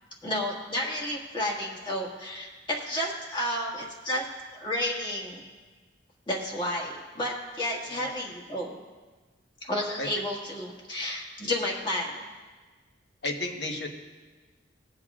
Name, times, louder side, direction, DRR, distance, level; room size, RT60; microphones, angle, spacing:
voice 1, 0.2-4.3 4.5-5.4 6.3-8.8 9.7-12.1, left 1 dB, 25° left, -3 dB, 1.8 m, -31 dB
voice 2, 13.2-13.9, left 2 dB, 60° left, 2 dB, 1.2 m, -33 dB
21.0 x 7.9 x 2.5 m, 1.4 s
head